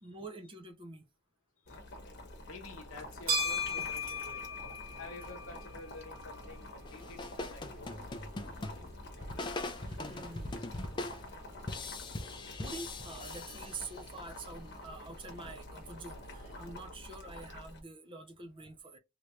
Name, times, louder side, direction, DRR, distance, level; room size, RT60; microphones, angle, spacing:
voice 1, 0.0-1.1 9.8-10.6 10.9-11.1 12.6-19.0, right 3 dB, 25° right, 0.6 m, -47 dB
Boiling, 1.7-17.8, left 1 dB, 50° left, 1.0 m, -48 dB
voice 2, 2.4-4.5 5.0-8.0 8.5-8.7, left 3 dB, 75° left, 1.0 m, -49 dB
sound 1, 2.9-16.8, left 1 dB, 45° right, 1.4 m, -42 dB
sound 2, 6.9-14.3, left 2 dB, 20° left, 0.4 m, -41 dB
3.2 x 2.9 x 2.4 m
head